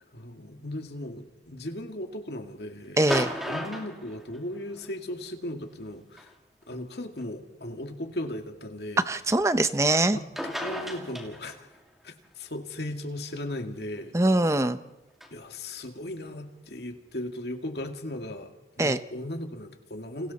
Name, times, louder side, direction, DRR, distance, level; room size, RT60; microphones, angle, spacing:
voice 1, 0.1-6.3 6.7-9.4 10.1-11.7 12.0-14.1 15.3-20.3, left 1 dB, 70° left, 4 dB, 2.2 m, -37 dB
sound 1, 3.0-4.9 6.2-6.3 7.2-7.3 10.1-10.2 10.4-11.8 15.2-15.3, equal, ahead, 2.5 m, -34 dB
voice 2, 3.0-3.3 9.1-10.2 14.1-14.8 18.8-19.0, right 2 dB, 15° right, 12 dB, 0.7 m, -22 dB
30.0 x 26.5 x 4.2 m, 1.1 s
head